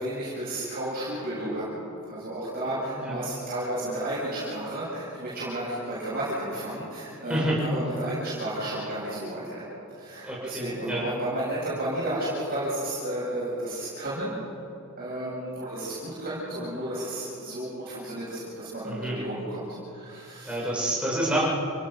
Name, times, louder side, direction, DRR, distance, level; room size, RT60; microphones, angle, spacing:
voice 1, 0.0-9.7 9.9-14.3 15.0-20.6, right 1 dB, 45° right, -8 dB, 7.9 m, -32 dB
voice 2, 2.7-3.2 7.3-7.6 10.2-11.1 18.8-19.2 20.4-21.5, right 1 dB, 5° right, -6 dB, 7.7 m, -28 dB
29.0 x 18.0 x 6.7 m, 2.9 s
head